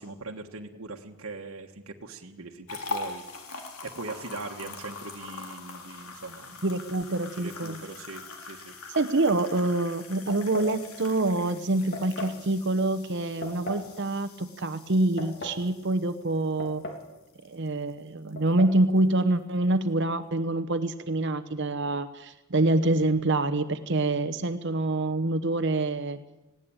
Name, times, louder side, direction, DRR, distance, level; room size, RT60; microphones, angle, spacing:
voice 1, 0.0-3.2 3.8-6.7 7.4-8.7, right 3 dB, 70° right, 1 dB, 1.5 m, -41 dB
sound 1, 2.7-17.9 18.3-18.5 19.0-19.1, left 4 dB, 85° left, 3.4 m, -43 dB
voice 2, 6.6-7.8 8.9-16.8 17.4-26.2, right 2 dB, 55° right, 11 dB, 0.9 m, -26 dB
sound 2, 10.3-10.8 11.9-12.4 13.4-13.9 14.9-15.6 16.6-17.1 17.4-17.5 18.4-18.8, left 2 dB, 50° left, 3.4 m, -38 dB
20.0 x 17.0 x 8.8 m, 1.0 s
head